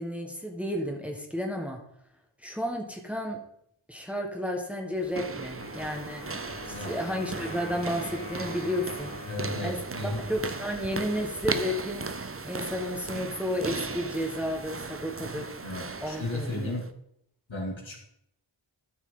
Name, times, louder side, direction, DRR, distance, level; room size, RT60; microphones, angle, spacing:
voice 1, 0.0-1.8 2.4-3.4 3.9-6.2 6.7-9.2 9.6-9.8 10.0-12.1 12.4-15.5 16.0-16.8, equal, 5° right, 2 dB, 1.5 m, -32 dB
footsteps across, 4.9-16.9, right 4 dB, 30° right, 0.6 m, -37 dB
Wind instrument woodwind instrument, 5.6-11.2, left 1 dB, 45° left, 2.0 m, -44 dB
voice 2, 9.3-10.2 15.6-16.9 17.5-18.0, left 2 dB, 70° left, -2 dB, 2.5 m, -34 dB
12.5 x 6.2 x 3.8 m, 0.73 s
wide cardioid pair, 40°, 47 cm